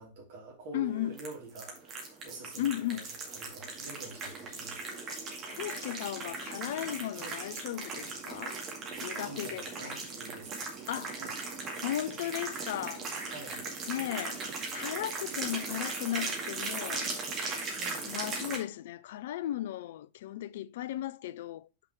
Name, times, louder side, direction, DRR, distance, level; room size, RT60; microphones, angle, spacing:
voice 1, 0.0-3.0 3.3-4.8 7.1-7.4 9.1-10.5 11.2-11.7 13.2-13.6 17.7-18.1, right 2 dB, 50° right, 3.0 m, -47 dB
voice 2, 0.7-1.1 2.6-3.0 5.5-8.6 9.0-10.0 10.9-11.2 11.8-13.3 13.9-14.4 14.7-17.1 18.0-21.7, left 13 dB, 55° left, 0.4 m, -36 dB
sound 1, 1.1-18.6, right 4 dB, 30° right, 2.1 m, -38 dB
5.9 x 4.8 x 4.5 m
figure-of-eight pair, 90°, 0 cm